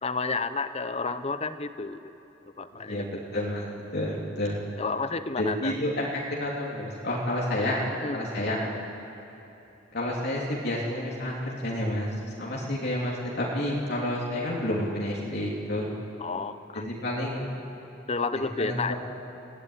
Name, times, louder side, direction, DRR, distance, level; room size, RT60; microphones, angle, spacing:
voice 1, 0.0-2.0 2.6-3.1 4.8-5.7 8.0-8.9 16.2-16.9 18.1-18.9, left 4 dB, 35° left, 11 dB, 0.8 m, -31 dB
voice 2, 2.7-3.1 3.3-3.7 3.9-4.6 5.4-6.0 6.3-7.8 8.1-8.6 9.9-12.1 12.4-15.9 16.7-17.5 18.6-18.9, left 1 dB, 55° left, -4 dB, 3.2 m, -29 dB
24.5 x 17.0 x 9.9 m, 3.0 s
head